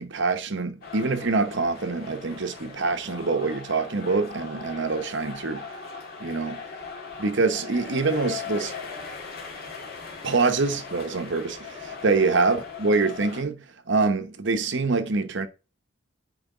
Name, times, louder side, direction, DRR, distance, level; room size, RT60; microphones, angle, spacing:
voice 1, 0.0-5.7 6.2-6.6 7.2-8.7 10.2-15.5, right 3 dB, 60° right, 0.9 m, -25 dB
sound 1, 0.8-13.4, left 5 dB, 50° left, 2.0 m, -39 dB
9.1 x 3.5 x 4.9 m
head